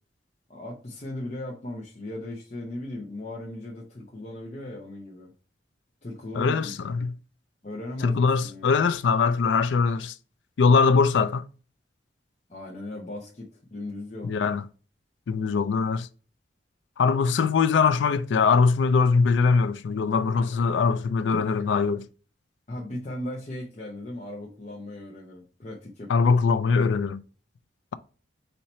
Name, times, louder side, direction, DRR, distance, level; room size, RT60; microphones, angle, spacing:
voice 1, 0.5-5.3 6.0-6.7 7.6-8.8 12.5-14.3 22.7-26.1, left 1 dB, 40° left, 0.7 m, -37 dB
voice 2, 6.4-7.1 8.0-10.1 10.6-11.4 14.2-14.7 15.3-16.1 17.0-22.1 26.1-27.2, left 5 dB, 85° left, 0.4 m, -22 dB
4.3 x 2.8 x 4.2 m
head